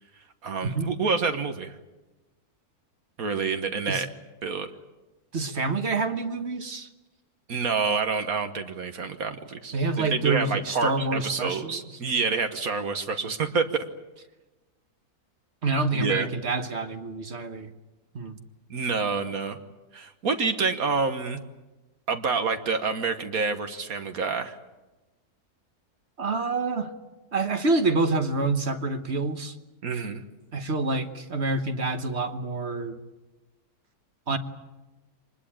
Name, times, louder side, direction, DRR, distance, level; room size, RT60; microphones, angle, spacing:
voice 1, 0.4-1.7 3.2-4.1 4.4-4.7 7.5-13.8 15.9-16.3 18.7-19.6 19.9-21.4 22.1-24.6 29.8-30.2, right 4 dB, 65° right, 1.7 m, -28 dB
voice 2, 5.3-6.9 9.7-11.8 15.6-17.7 18.1-18.4 26.2-26.9 27.3-29.5 30.5-33.0 34.3-34.4, right 3 dB, 45° right, 1.4 m, -27 dB
25.0 x 20.5 x 8.7 m
omnidirectional pair, 1.6 m